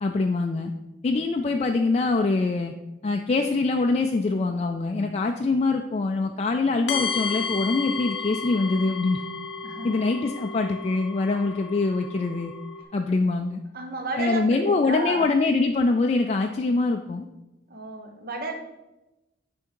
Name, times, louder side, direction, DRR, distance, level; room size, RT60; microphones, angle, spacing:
voice 1, 0.0-0.7 1.0-2.7 3.0-9.2 9.8-12.5 12.9-13.6 14.2-17.3, left 3 dB, 35° left, 3 dB, 0.3 m, -24 dB
sound 1, 6.9-12.8, left 5 dB, 70° left, 0.7 m, -33 dB
voice 2, 9.6-10.0 13.7-15.2 17.7-18.5, right 2 dB, 50° right, 5 dB, 0.9 m, -32 dB
9.9 x 3.5 x 4.6 m, 1.0 s
head